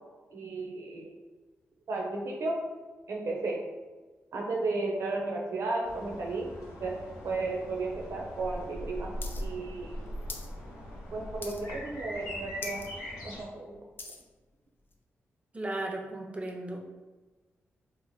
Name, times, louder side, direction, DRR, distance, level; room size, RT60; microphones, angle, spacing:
voice 1, 0.3-1.1 1.9-2.6 3.1-3.6 4.3-6.5 6.8-7.0 7.2-10.1 11.1-12.9 13.2-13.8, right 3 dB, 70° right, -1 dB, 0.6 m, -34 dB
sound 1, 5.8-13.4, equal, 90° left, 0.9 m, -41 dB
sound 2, 9.2-9.4 9.7-10.5 10.9-11.1 11.4-11.9 12.2-12.3 12.5-12.9 13.3-14.3 14.9-15.0, left 3 dB, 45° left, 0.4 m, -42 dB
voice 2, 15.5-16.8, right 1 dB, 25° right, 1 dB, 0.5 m, -35 dB
2.9 x 2.0 x 3.0 m, 1.2 s
cardioid pair, 65°, 5 cm